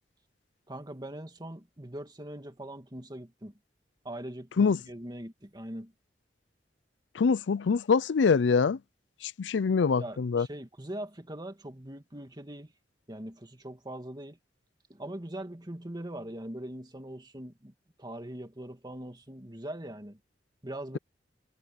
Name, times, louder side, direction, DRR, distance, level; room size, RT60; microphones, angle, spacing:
voice 1, 0.7-3.5 4.0-5.9 10.0-12.7 13.1-14.4 14.9-20.2 20.6-21.0, right 1 dB, 25° right, 2.2 m, -41 dB
voice 2, 7.1-8.8 9.2-10.5, left 5 dB, 85° left, 0.5 m, -24 dB
head